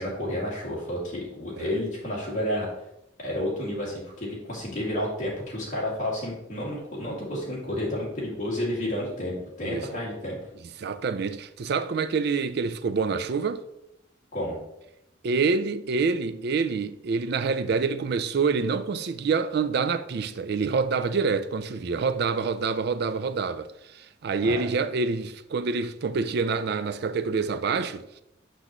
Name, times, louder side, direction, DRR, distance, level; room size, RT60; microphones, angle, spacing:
voice 1, 0.0-2.7 3.2-10.4 14.3-14.6 24.4-24.5, left 1 dB, 40° left, 2.3 m, -31 dB
voice 2, 10.8-13.6 15.2-28.2, right 4 dB, 55° right, 0.4 m, -27 dB
6.5 x 6.0 x 3.0 m
head